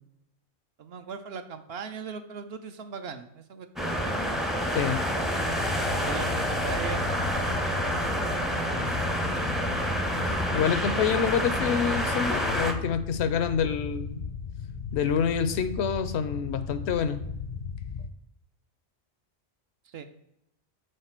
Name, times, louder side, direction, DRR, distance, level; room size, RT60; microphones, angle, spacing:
voice 1, 0.8-4.6 5.9-7.9 8.7-9.0 19.9-20.1, right 6 dB, 70° right, 8 dB, 0.8 m, -39 dB
sound 1, 3.8-12.7, equal, ahead, 0.5 m, -28 dB
sound 2, 4.7-18.1, left 5 dB, 55° left, 0.6 m, -37 dB
voice 2, 10.5-14.2 14.9-17.2, left 7 dB, 80° left, 11 dB, 0.9 m, -27 dB
6.5 x 4.0 x 4.4 m, 0.81 s
omnidirectional pair, 1.1 m